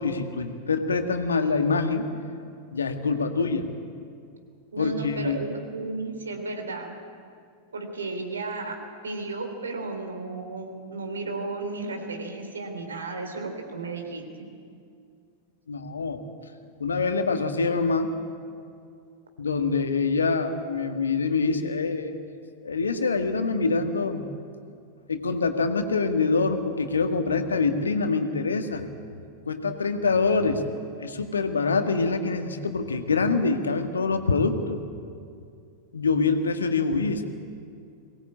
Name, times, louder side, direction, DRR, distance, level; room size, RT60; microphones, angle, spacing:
voice 1, 0.0-2.1 2.7-3.7 4.8-5.4 15.7-16.2 16.8-18.1 19.4-22.1 22.6-24.2 25.1-28.9 29.5-30.6 31.0-34.8 35.9-37.2, left 4 dB, 70° left, 7 dB, 1.7 m, -25 dB
voice 2, 4.7-7.0 7.7-8.8 9.0-14.2, right 3 dB, 70° right, 5 dB, 3.5 m, -34 dB
23.0 x 18.5 x 8.6 m, 2.3 s
figure-of-eight pair, 90°, 0 cm